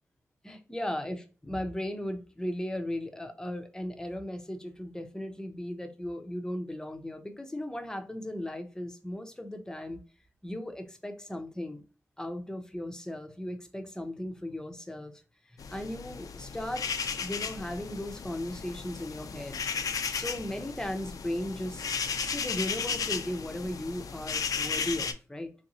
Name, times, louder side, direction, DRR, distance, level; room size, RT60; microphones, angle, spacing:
voice 1, 0.4-10.0 10.4-11.8 12.2-15.2 15.7-16.9 17.1-19.6 20.1-21.8 22.2-25.5, left 1 dB, 10° left, 0.6 m, -36 dB
sound 1, 15.6-25.1, left 6 dB, 75° left, 0.4 m, -35 dB
3.7 x 2.5 x 2.9 m
cardioid pair, 75°, 6 cm